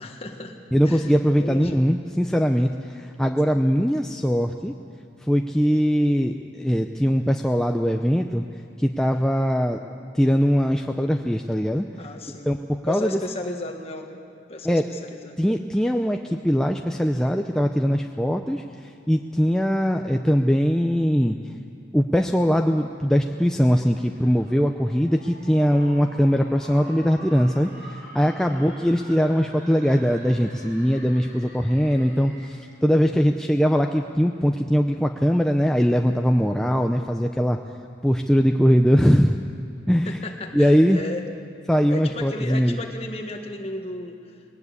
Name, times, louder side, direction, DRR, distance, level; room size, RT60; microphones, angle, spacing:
voice 1, 0.0-0.5 0.8-1.8 3.5-3.7 12.0-14.2 14.5-15.4 25.7-26.1 28.5-28.7 40.0-41.3 41.9-44.4, left 2 dB, 30° left, 3 dB, 1.7 m, -35 dB
voice 2, 0.7-4.7 5.3-8.4 8.8-9.8 10.1-11.8 12.5-12.6 12.8-13.2 14.6-14.9 15.4-18.6 19.1-21.4 21.9-37.6 38.0-39.4 39.9-40.1 40.5-41.0 41.7-42.8, equal, 5° left, 3 dB, 0.5 m, -21 dB
sound 1, 23.9-32.8, right 1 dB, 45° right, 4.7 m, -45 dB
20.5 x 18.0 x 8.2 m, 2.7 s
head